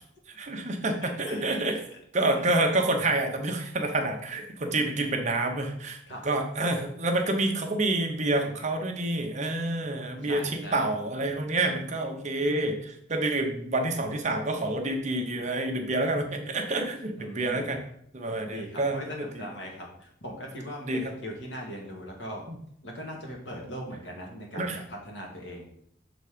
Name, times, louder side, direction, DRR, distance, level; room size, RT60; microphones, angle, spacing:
voice 1, 0.3-1.8 2.1-17.8 18.1-19.0 20.9-21.1 22.5-22.6 24.5-24.8, right 2 dB, 40° right, 3 dB, 0.9 m, -28 dB
voice 2, 1.0-1.6 4.6-4.8 6.1-6.2 10.2-10.9 17.2-17.8 18.3-22.4 22.8-25.7, equal, 70° left, -1 dB, 2.0 m, -40 dB
6.8 x 4.0 x 5.0 m, 0.68 s
head